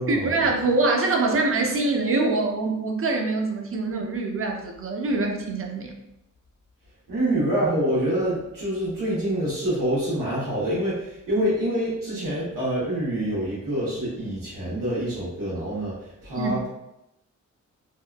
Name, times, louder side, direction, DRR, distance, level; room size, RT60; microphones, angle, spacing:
voice 1, 0.1-5.9 16.4-16.5, right 3 dB, 45° right, 2 dB, 0.5 m, -24 dB
voice 2, 7.1-16.7, right 1 dB, 80° right, -9 dB, 1.2 m, -26 dB
2.8 x 2.4 x 2.2 m, 0.85 s
wide cardioid pair, 90°, 32 cm